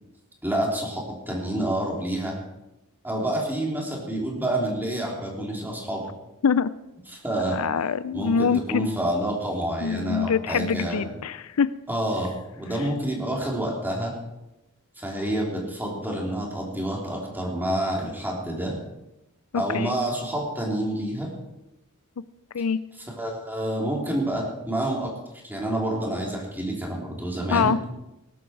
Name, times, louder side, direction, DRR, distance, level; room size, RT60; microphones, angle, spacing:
voice 1, 0.4-2.4 3.0-6.1 7.1-7.6 8.1-11.1 11.9-14.1 15.0-18.8 19.6-21.3 23.2-25.1 25.4-27.7, right 1 dB, 10° right, -2 dB, 3.8 m, -28 dB
voice 2, 7.5-8.9 9.8-11.7 19.5-19.9 22.5-22.8 27.5-27.8, left 6 dB, 75° left, 16 dB, 0.5 m, -24 dB
19.5 x 11.5 x 4.7 m, 0.93 s
head